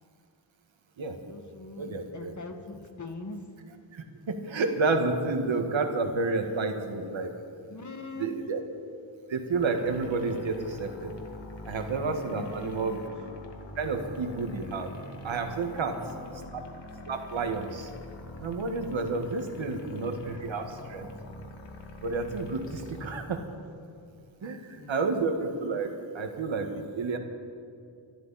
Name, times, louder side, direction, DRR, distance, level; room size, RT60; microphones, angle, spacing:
voice 1, 1.2-3.4 7.7-8.5 12.2-13.0 15.7-16.5 19.3-20.2 24.4-25.0, left 2 dB, 40° left, 4 dB, 1.9 m, -43 dB
voice 2, 1.8-2.3 3.9-7.3 8.2-8.6 9.3-11.2 11.6-13.0 13.8-14.9 15.2-16.0 16.5-16.6 17.1-17.9 18.4-21.1 22.0-23.5 24.4-27.2, right 3 dB, 75° right, 5 dB, 1.8 m, -30 dB
sound 1, 9.6-23.1, left 2 dB, 65° left, 2.3 m, -44 dB
26.0 x 13.0 x 4.2 m, 2.4 s
wide cardioid pair, 95°, 46 cm